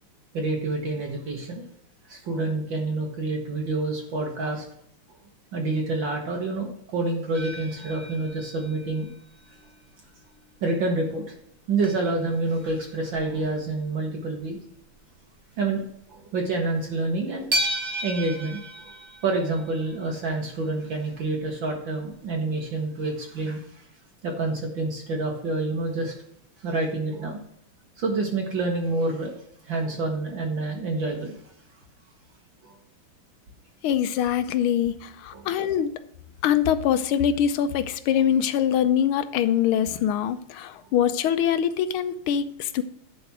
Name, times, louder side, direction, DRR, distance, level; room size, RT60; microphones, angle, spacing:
voice 1, 0.3-1.6 2.1-4.7 5.5-9.1 10.6-11.3 11.7-14.6 15.6-15.8 16.1-17.5 18.0-18.9 19.2-23.8 24.2-26.1 26.6-27.4 28.0-29.4 29.7-31.3 32.6-32.8 35.3-35.5, right 2 dB, 65° right, 1 dB, 1.9 m, -28 dB
sound 1, 7.3-9.9 10.3-10.4 11.0-11.1 11.3-11.4 11.8-13.9 14.3-14.6 14.9-15.0 15.6-15.8 16.2-16.3 17.5-20.5 21.7-21.8 22.1-22.2, right 1 dB, 80° right, 0.5 m, -35 dB
voice 2, 33.8-35.9 36.4-42.8, left 9 dB, 80° left, 12 dB, 1.5 m, -23 dB
10.5 x 4.2 x 5.9 m, 0.69 s
omnidirectional pair, 2.4 m